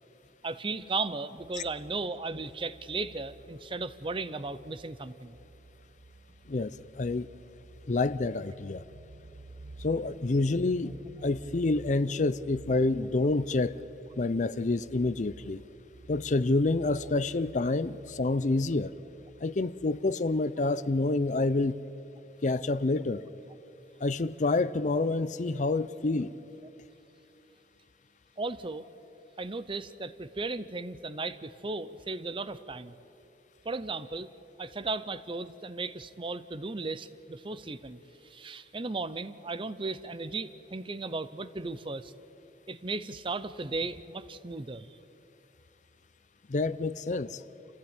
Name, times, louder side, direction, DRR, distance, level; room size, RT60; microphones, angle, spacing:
voice 1, 0.4-5.4 28.4-28.8 29.4-32.9 33.6-34.3 34.6-42.1 42.7-45.0, right 3 dB, 30° right, 14 dB, 0.7 m, -36 dB
sound 1, 1.4-20.0, right 2 dB, 60° right, 0.8 m, -52 dB
voice 2, 6.5-7.3 7.9-8.8 9.8-11.0 11.2-13.8 14.1-15.6 16.1-18.9 19.4-21.8 22.4-23.2 24.0-26.3 46.5-47.4, left 2 dB, 45° left, 16 dB, 0.5 m, -28 dB
28.5 x 15.5 x 8.9 m, 3.0 s
head